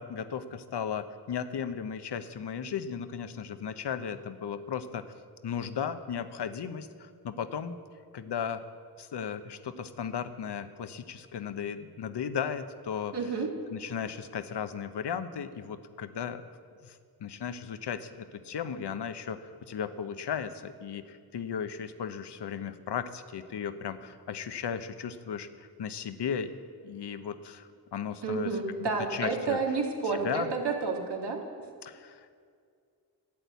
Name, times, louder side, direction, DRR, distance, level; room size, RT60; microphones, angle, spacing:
voice 1, 0.0-5.0 5.4-7.8 8.1-8.6 9.0-13.2 13.7-16.4 16.8-26.5 26.8-29.6 30.2-30.5 31.8-32.3, left 7 dB, 70° left, 11 dB, 1.0 m, -36 dB
voice 2, 13.1-13.5 28.2-31.4, right 4 dB, 70° right, 1 dB, 2.5 m, -30 dB
12.0 x 8.9 x 8.3 m, 2.2 s
supercardioid pair, 40°, 42 cm